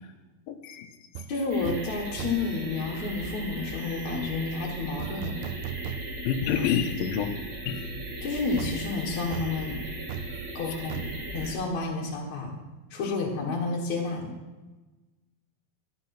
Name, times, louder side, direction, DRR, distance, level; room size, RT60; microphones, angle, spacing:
voice 1, 0.5-0.9 6.2-7.3 7.7-7.9 13.0-13.1, left 8 dB, 75° left, 3 dB, 2.4 m, -28 dB
sound 1, 1.2-1.3 1.7-1.9 2.2-2.6 5.0-6.4 6.8-6.9 8.6-12.2 12.5-12.6, right 10 dB, 85° right, 2.5 m, -38 dB
voice 2, 1.3-5.3 8.2-9.8 10.5-12.5 12.9-14.3, left 3 dB, 55° left, -2 dB, 2.6 m, -30 dB
sound 2, 1.5-11.5, right 1 dB, 45° right, 4.1 m, -38 dB
12.5 x 11.5 x 6.0 m, 1.2 s
omnidirectional pair, 4.4 m